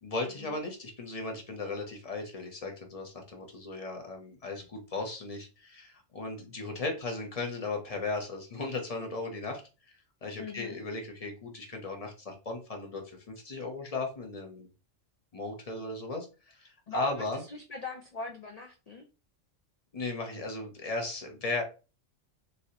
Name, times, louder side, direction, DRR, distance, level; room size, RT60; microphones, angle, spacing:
voice 1, 0.0-9.6 10.2-14.7 15.3-17.4 19.9-21.6, left 3 dB, 35° left, 3 dB, 0.7 m, -36 dB
voice 2, 10.4-10.8 16.9-19.1, left 3 dB, 75° left, 3 dB, 0.3 m, -41 dB
3.1 x 2.6 x 2.7 m, 0.31 s
omnidirectional pair, 1.3 m